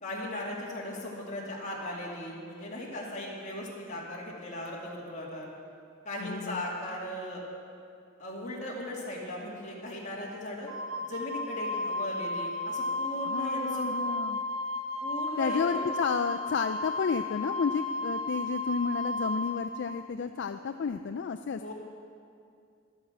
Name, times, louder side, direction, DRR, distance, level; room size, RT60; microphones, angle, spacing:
voice 1, 0.0-5.5 6.0-7.4 8.2-10.7 11.0-13.9 15.0-15.9 21.6-21.7, left 1 dB, 35° left, -3 dB, 2.4 m, -38 dB
voice 2, 6.2-6.6 13.3-14.4 15.4-21.7, left 5 dB, 60° left, 8 dB, 0.4 m, -31 dB
Wind instrument woodwind instrument, 10.7-19.6, left 2 dB, 75° right, 1.3 m, -33 dB
12.0 x 8.8 x 7.4 m, 2.4 s
head